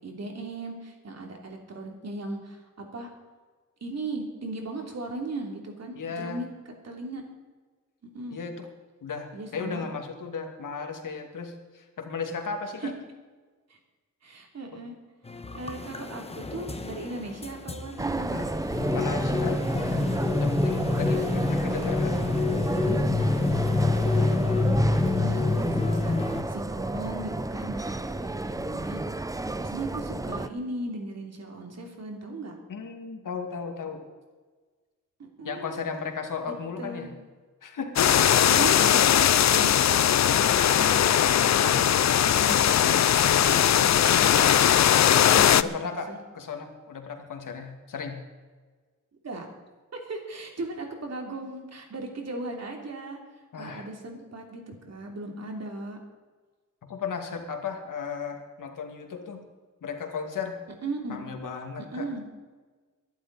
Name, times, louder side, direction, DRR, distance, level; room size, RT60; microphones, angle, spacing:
voice 1, 0.0-3.1 3.8-6.5 6.8-7.2 8.1-8.4 9.3-9.9 12.8-12.9 14.2-14.9 15.5-18.4 18.9-19.6 20.8-21.3 23.5-26.1 26.5-29.0 29.6-32.5 35.2-35.8 36.8-37.1 38.5-39.0 39.4-44.6 45.1-46.2 49.2-49.5 49.9-53.2 53.6-56.0 60.8-61.2 61.9-62.2, right 2 dB, 55° right, 2 dB, 3.2 m, -37 dB
voice 2, 6.0-6.4 8.3-8.7 9.0-12.9 14.7-14.8 18.2-18.5 18.9-19.6 20.4-22.4 32.7-34.1 35.4-37.1 37.6-38.4 45.5-48.2 53.5-53.9 56.8-59.5 59.8-60.6 61.1-62.1, left 5 dB, 85° left, 4 dB, 2.3 m, -35 dB
sound 1, 15.3-26.4, left 3 dB, 20° left, 1.1 m, -27 dB
sound 2, 18.0-30.5, right 2 dB, 10° right, 0.6 m, -32 dB
sound 3, 38.0-45.6, left 10 dB, 60° left, 0.5 m, -20 dB
23.0 x 11.5 x 4.1 m, 1.4 s
wide cardioid pair, 135°, 31 cm